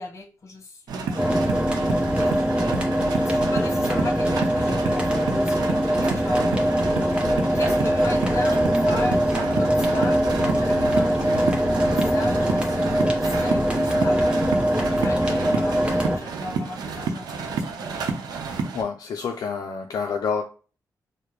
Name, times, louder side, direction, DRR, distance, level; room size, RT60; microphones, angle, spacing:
voice 1, 0.0-6.5 7.5-11.6 11.9-14.4 15.0-18.1, left 2 dB, 45° left, 1.1 m, -37 dB
sound 1, 0.9-18.8, right 4 dB, 85° right, 0.7 m, -30 dB
sound 2, 1.2-16.2, equal, 15° right, 0.9 m, -22 dB
voice 2, 18.7-20.4, left 6 dB, 65° left, 0.4 m, -28 dB
4.7 x 2.1 x 3.0 m
cardioid pair, 95°, 7 cm